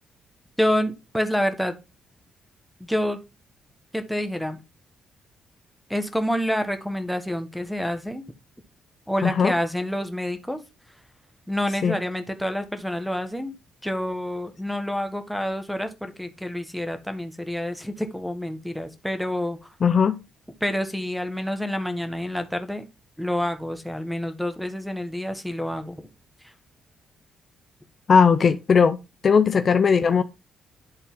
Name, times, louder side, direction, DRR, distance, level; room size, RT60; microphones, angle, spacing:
voice 1, 0.6-1.8 2.9-3.2 3.9-4.6 5.9-8.2 9.1-10.6 11.5-13.5 13.8-19.6 20.6-22.8 23.2-26.1, equal, ahead, 1.4 m, -28 dB
voice 2, 9.2-9.5 11.8-12.0 19.8-20.2 28.1-30.2, left 6 dB, 50° left, 0.6 m, -18 dB
11.0 x 3.9 x 3.7 m
cardioid pair, 90°, 0 cm